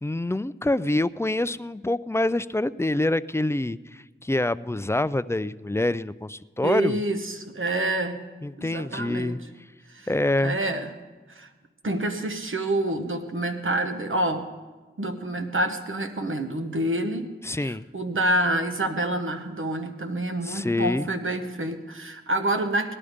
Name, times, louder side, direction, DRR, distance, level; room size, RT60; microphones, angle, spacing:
voice 1, 0.0-7.0 8.4-9.4 10.1-10.6 17.4-17.9 20.4-21.1, left 1 dB, 15° left, 15 dB, 0.3 m, -26 dB
voice 2, 6.6-8.2 8.6-9.4 9.9-10.1 10.4-10.9 11.3-11.5 11.8-14.5 15.0-17.3 17.6-22.9, right 1 dB, 75° right, 6 dB, 1.1 m, -27 dB
18.0 x 11.0 x 5.0 m, 1.3 s
wide cardioid pair, 50°, 21 cm